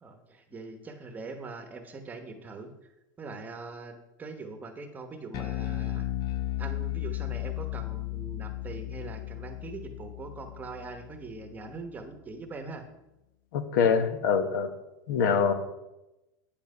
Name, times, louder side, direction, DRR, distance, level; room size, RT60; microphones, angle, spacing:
voice 1, 0.0-2.7 3.2-6.1 6.6-12.8, right 3 dB, 15° right, 6 dB, 1.0 m, -42 dB
Bass guitar, 5.3-11.8, left 17 dB, 40° left, 0.7 m, -35 dB
voice 2, 13.5-14.7 15.1-15.5, left 6 dB, 75° left, 9 dB, 1.2 m, -24 dB
8.9 x 7.4 x 5.5 m, 0.96 s
supercardioid pair, 150°, 10 cm